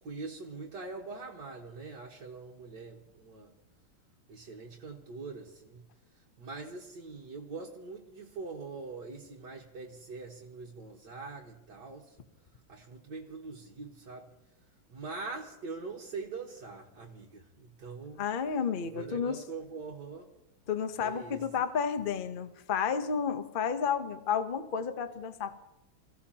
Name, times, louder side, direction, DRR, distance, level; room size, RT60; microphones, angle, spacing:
voice 1, 0.0-3.5 4.3-5.8 6.4-12.2 12.7-14.3 14.9-18.2 18.8-20.3 21.0-21.4, right 4 dB, 55° right, -4 dB, 2.0 m, -43 dB
voice 2, 18.2-19.4 20.7-25.5, left 6 dB, 55° left, 9 dB, 0.5 m, -31 dB
28.5 x 16.0 x 2.9 m, 0.95 s
omnidirectional pair, 2.3 m